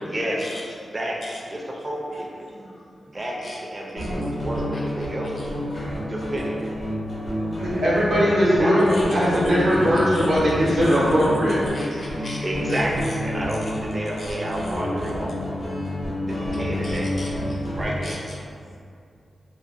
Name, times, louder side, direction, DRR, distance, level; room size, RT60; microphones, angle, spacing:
voice 1, 0.1-0.5 0.9-1.2 1.5-2.5 3.1-5.5 6.1-6.8 8.6-9.5 12.4-15.4 16.3-17.3 17.8-18.2, right 1 dB, 25° right, -2 dB, 0.4 m, -30 dB
voice 2, 1.2-1.7 2.6-2.7 3.4-3.6 4.0-4.3 4.7-4.9 5.4-5.5 5.7-6.1 8.9-9.0 9.6-10.3 10.8-11.0 11.7-12.4 12.7-12.8 14.2-15.2 15.6-16.0 16.5-17.6 18.0-18.4, left 1 dB, 50° left, -4 dB, 0.5 m, -42 dB
sound 1, 4.0-18.1, left 1 dB, 85° left, 1.0 m, -29 dB
voice 3, 7.6-11.6, equal, 85° right, -9 dB, 0.7 m, -19 dB
2.5 x 2.1 x 2.4 m, 2.3 s
wide cardioid pair, 95°, 0 cm